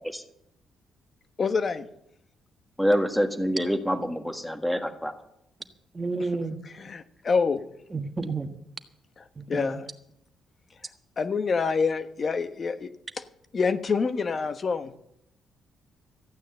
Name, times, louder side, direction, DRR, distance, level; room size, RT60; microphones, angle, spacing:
voice 1, 1.4-1.9 6.6-7.6 9.2-9.9 11.2-12.9 13.5-14.9, left 5 dB, 40° left, 10 dB, 1.1 m, -27 dB
voice 2, 2.8-5.1, equal, 5° left, 7 dB, 1.6 m, -26 dB
voice 3, 5.9-6.6 7.9-8.5 9.4-9.8, right 3 dB, 25° right, 7 dB, 1.4 m, -31 dB
14.5 x 9.1 x 7.7 m, 0.79 s
cardioid pair, 90°, 0 cm